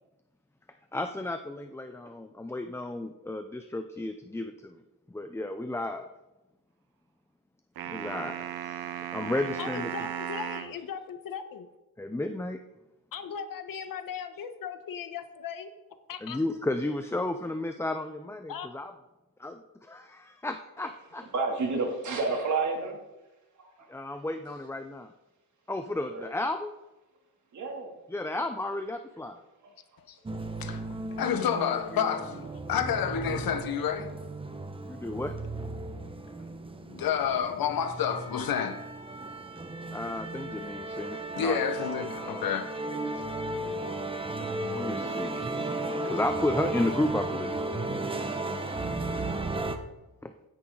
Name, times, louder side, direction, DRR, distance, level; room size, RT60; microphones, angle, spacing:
voice 1, 0.9-4.7 5.1-6.1 7.9-9.9 12.0-12.6 16.2-18.9 19.4-21.2 23.9-25.1 25.7-26.7 28.1-29.4 34.9-35.3 39.9-41.6 44.7-47.6 50.2-50.3, left 2 dB, 5° left, 0.5 m, -33 dB
sound 1, 7.8-10.8, right 9 dB, 80° right, 1.0 m, -36 dB
voice 2, 9.6-11.7 13.1-15.7 16.1-16.4 18.5-18.7, left 7 dB, 70° left, 1.3 m, -38 dB
voice 3, 21.3-23.0 23.6-23.7 26.1-26.3 27.5-27.9, right 3 dB, 55° right, 2.8 m, -29 dB
sound 2, 30.3-49.8, right 2 dB, 15° right, 0.9 m, -35 dB
voice 4, 31.2-34.1 36.9-38.8 41.3-42.7, left 8 dB, 85° left, 1.3 m, -29 dB
16.0 x 10.0 x 3.9 m
wide cardioid pair, 150°, 35 cm